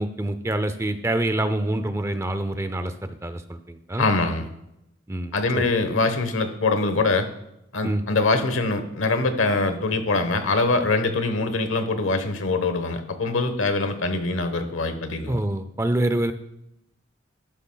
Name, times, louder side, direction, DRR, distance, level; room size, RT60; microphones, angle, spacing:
voice 1, 0.0-4.1 5.1-5.6 7.8-8.0 15.3-16.3, right 1 dB, 15° right, 10 dB, 0.4 m, -26 dB
voice 2, 4.0-4.5 5.3-7.3 7.7-15.4, left 3 dB, 80° left, 9 dB, 1.1 m, -23 dB
12.0 x 11.0 x 2.3 m, 0.84 s
head